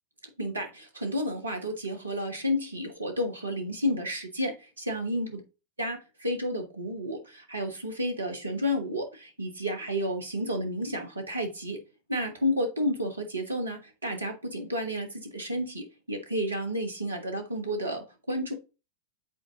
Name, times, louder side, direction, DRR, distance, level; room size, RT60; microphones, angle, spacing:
voice 1, 0.4-5.3 5.8-11.8 12.1-18.5, equal, 80° right, 1.4 m, -31 dB
7.7 x 4.2 x 3.7 m
figure-of-eight pair, 90°, 0 cm